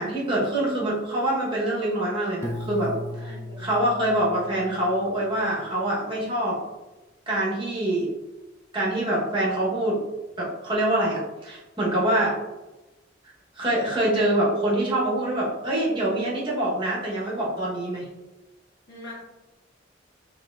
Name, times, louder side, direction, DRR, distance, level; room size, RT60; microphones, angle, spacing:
voice 1, 0.0-2.9 3.2-6.6 7.3-8.1 8.7-10.0 10.4-12.4 13.5-18.0, right 1 dB, 25° right, -5 dB, 1.2 m, -25 dB
Piano, 2.4-5.3, left 1 dB, 15° left, 0.3 m, -37 dB
voice 2, 3.2-3.8 18.9-19.2, left 1 dB, 60° left, -7 dB, 1.2 m, -43 dB
4.4 x 3.1 x 2.5 m, 1.1 s
head